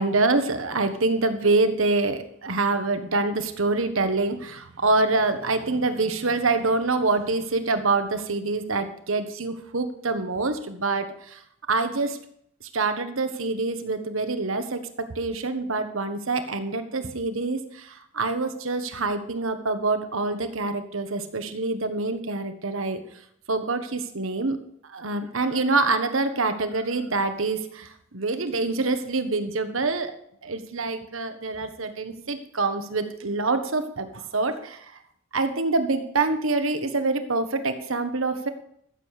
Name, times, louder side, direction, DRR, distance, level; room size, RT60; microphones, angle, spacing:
voice 1, 0.0-11.4 11.7-12.2 12.7-23.0 23.5-24.6 24.8-30.1 30.4-34.9 35.3-38.5, right 3 dB, 70° right, 9 dB, 1.4 m, -26 dB
14.0 x 7.7 x 6.6 m, 0.71 s
head